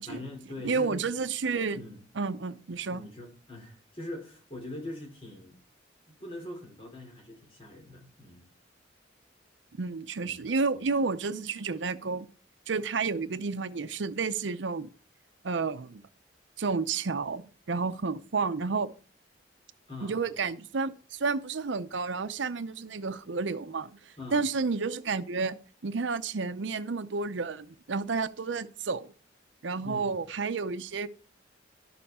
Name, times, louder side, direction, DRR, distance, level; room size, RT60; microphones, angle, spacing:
voice 1, 0.1-1.1 1.7-2.0 2.9-5.6 6.1-8.5 10.2-10.4 19.9-20.4 24.2-24.5 29.8-30.2, left 1 dB, 30° left, 3.0 m, -42 dB
voice 2, 0.6-1.8 2.2-3.0 9.8-12.3 12.7-14.9 15.4-16.0 16.6-18.9 20.0-29.1 29.6-31.1, right 4 dB, 75° right, 0.6 m, -31 dB
12.0 x 6.9 x 4.2 m
head